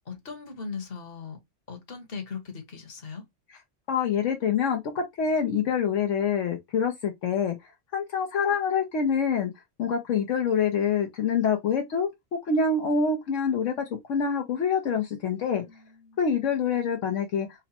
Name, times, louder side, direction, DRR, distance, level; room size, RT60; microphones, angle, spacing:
voice 1, 0.1-1.4 1.7-3.2 15.6-16.2, left 5 dB, 50° left, 1.3 m, -39 dB
voice 2, 3.9-7.5 7.9-9.5 9.8-12.1 12.4-15.6 16.2-17.5, left 6 dB, 75° left, 1.1 m, -26 dB
3.9 x 2.1 x 4.1 m
omnidirectional pair, 1.3 m